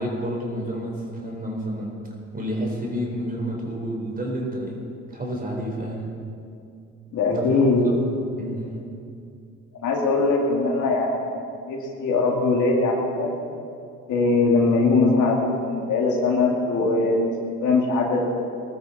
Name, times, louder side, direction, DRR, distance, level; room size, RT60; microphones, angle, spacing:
voice 1, 0.0-1.9 2.3-4.8 5.1-6.1 7.3-8.9, equal, 30° right, -1 dB, 4.6 m, -30 dB
voice 2, 7.1-7.9 9.8-11.3 11.7-13.3 14.1-17.3 17.6-18.3, left 3 dB, 80° left, -1 dB, 2.5 m, -21 dB
20.5 x 13.0 x 4.3 m, 2.5 s
cardioid pair, 90°, 30 cm